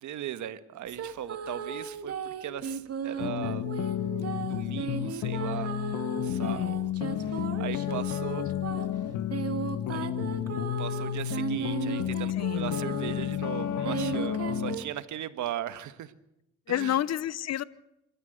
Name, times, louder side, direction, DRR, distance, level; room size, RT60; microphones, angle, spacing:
voice 1, 0.0-3.7 4.5-5.7 6.1-6.9 7.2-8.4 9.9-10.1 10.8-16.1 16.7-17.0, right 11 dB, 75° right, 12 dB, 1.6 m, -38 dB
sound 1, 0.9-13.4 13.8-14.8, right 6 dB, 55° right, 2.3 m, -36 dB
sound 2, 3.2-14.8, left 10 dB, 85° left, 1.3 m, -31 dB
voice 2, 6.4-6.8 12.4-12.8 16.7-17.6, left 11 dB, 60° left, 18 dB, 0.9 m, -30 dB
27.0 x 14.0 x 8.1 m, 0.84 s
cardioid pair, 90°, 30 cm